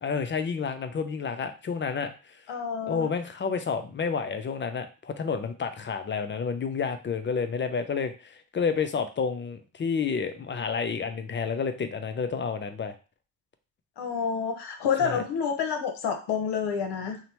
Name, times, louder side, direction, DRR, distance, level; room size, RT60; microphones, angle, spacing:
voice 1, 0.0-2.4 2.9-13.0 15.0-15.2, left 5 dB, 30° left, 9 dB, 0.4 m, -30 dB
voice 2, 2.5-3.1 14.0-17.2, left 6 dB, 65° left, 4 dB, 0.8 m, -29 dB
2.9 x 2.0 x 2.8 m, 0.33 s
supercardioid pair, 55°, 43 cm